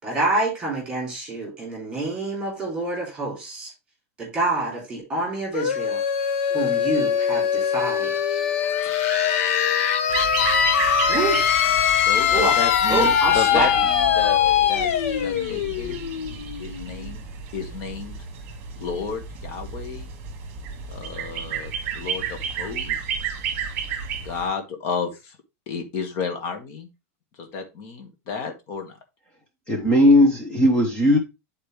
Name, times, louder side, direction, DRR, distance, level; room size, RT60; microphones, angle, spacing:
voice 1, 0.0-3.7 4.2-6.0 6.5-8.1 11.1-11.4 12.3-12.6 12.9-13.8, right 2 dB, 10° right, 3.5 m, -27 dB
sound 1, 5.5-17.1, left 8 dB, 60° left, 0.8 m, -22 dB
sound 2, 10.1-24.5, right 6 dB, 30° right, 1.4 m, -33 dB
voice 2, 12.0-14.4 14.7-14.9 15.2-16.0 16.6-17.3 17.5-18.1 18.8-20.1 20.9-23.0 24.2-25.4 25.7-26.9 27.4-29.0, left 5 dB, 35° left, 1.5 m, -32 dB
voice 3, 29.7-31.2, left 1 dB, 10° left, 0.9 m, -17 dB
10.0 x 4.3 x 3.3 m
supercardioid pair, 175°, 8 cm